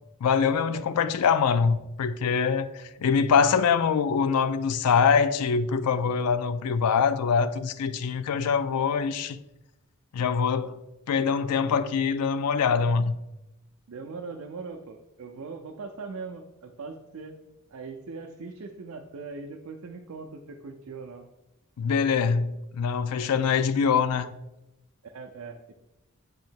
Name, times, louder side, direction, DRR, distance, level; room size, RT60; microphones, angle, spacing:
voice 1, 0.2-2.7 3.0-9.4 10.1-10.8 11.1-13.1 21.8-24.3, left 6 dB, 90° left, 0.4 m, -24 dB
voice 2, 13.9-17.4 17.7-21.3 25.0-25.7, right 4 dB, 70° right, 0.5 m, -40 dB
7.9 x 2.8 x 4.4 m
head